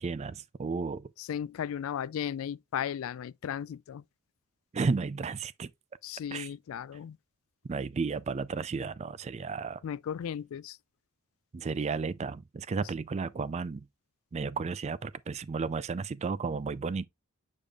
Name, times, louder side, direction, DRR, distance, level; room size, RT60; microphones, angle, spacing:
voice 1, 0.0-1.1 4.7-5.7 6.3-6.5 7.6-9.8 11.5-13.9 14.3-17.1, right 4 dB, 30° right, 0.3 m, -33 dB
voice 2, 1.2-4.0 6.0-7.2 9.8-10.8, left 9 dB, 65° left, 0.3 m, -35 dB
8.2 x 5.2 x 2.3 m
head